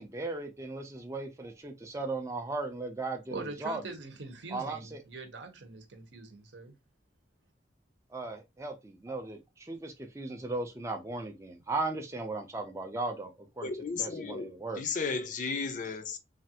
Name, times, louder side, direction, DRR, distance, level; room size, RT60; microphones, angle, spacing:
voice 1, 0.0-3.8 4.5-5.0 8.1-13.7 14.0-14.8, right 2 dB, 15° right, 0.4 m, -37 dB
voice 2, 3.3-6.7, right 3 dB, 70° right, 0.8 m, -43 dB
voice 3, 13.6-16.2, left 4 dB, 40° left, 0.4 m, -34 dB
3.2 x 2.4 x 2.7 m
head